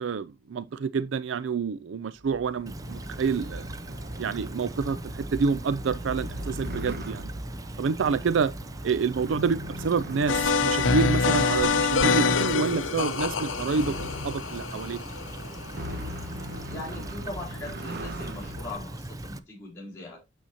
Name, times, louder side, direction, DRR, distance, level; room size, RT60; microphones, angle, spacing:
voice 1, 0.0-3.7 4.2-7.3 7.8-8.5 8.8-14.0 14.2-15.0, right 5 dB, 80° right, 0.4 m, -28 dB
sound 1, 2.1-19.0, equal, 60° right, 1.2 m, -40 dB
Stream / Trickle dribble, 2.7-19.4, right 1 dB, 20° right, 0.5 m, -40 dB
sound 2, 10.3-16.1, left 5 dB, 85° left, 0.7 m, -26 dB
voice 2, 16.7-20.3, left 2 dB, 15° left, 4.5 m, -40 dB
8.8 x 7.2 x 2.8 m
head